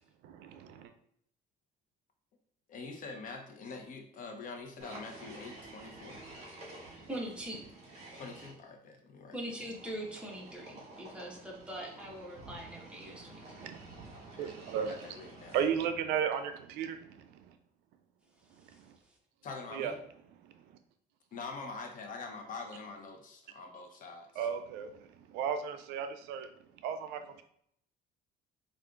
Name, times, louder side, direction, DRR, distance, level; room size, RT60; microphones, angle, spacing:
voice 1, 0.2-0.9 13.6-13.8 14.4-15.1 15.5-17.6 18.7-19.0 19.7-19.9 20.4-20.8 24.4-27.4, right 8 dB, 90° right, 8 dB, 0.4 m, -35 dB
voice 2, 2.7-6.2 8.1-9.4 14.4-15.6 19.4-19.9 21.3-24.5, left 4 dB, 55° left, 3 dB, 0.7 m, -45 dB
sound 1, 4.8-8.5 9.5-15.9, right 2 dB, 40° right, 1.4 m, -51 dB
voice 3, 7.1-7.7 9.3-13.7 18.7-18.8, right 1 dB, 5° right, -2 dB, 1.0 m, -42 dB
4.9 x 2.4 x 2.3 m, 0.70 s
cardioid pair, 110°, 17 cm